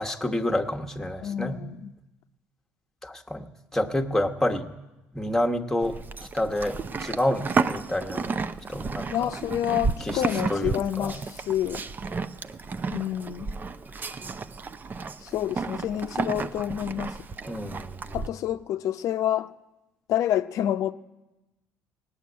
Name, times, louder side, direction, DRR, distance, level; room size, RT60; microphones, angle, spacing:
voice 1, 0.0-1.6 3.0-4.7 5.1-6.0 6.3-8.3 8.7-9.3 10.0-10.2 10.5-11.2 17.5-18.2, left 1 dB, 5° left, 1.1 m, -28 dB
voice 2, 1.2-1.9 9.1-11.9 12.9-13.5 15.2-17.2 18.1-19.5 20.1-20.9, left 11 dB, 65° left, 0.6 m, -28 dB
Livestock farm animals working animals, 5.8-18.3, right 4 dB, 30° right, 0.6 m, -32 dB
17.5 x 7.1 x 9.5 m
supercardioid pair, 75°, 6 cm